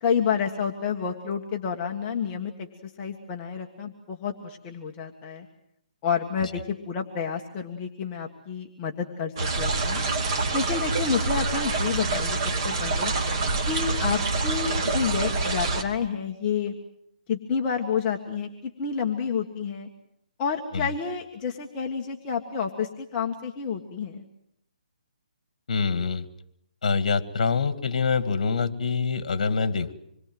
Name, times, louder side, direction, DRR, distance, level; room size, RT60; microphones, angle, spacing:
voice 1, 0.0-5.5 6.0-10.0 10.5-13.1 13.7-16.7 17.3-19.9 20.4-24.2, left 6 dB, 20° left, 1 dB, 1.6 m, -29 dB
sound 1, 9.4-15.8, right 3 dB, 30° right, 2.6 m, -26 dB
voice 2, 25.7-26.3 26.8-29.9, left 5 dB, 55° left, 12 dB, 2.1 m, -25 dB
26.5 x 22.0 x 7.9 m, 0.73 s
hypercardioid pair, 170°, 5 cm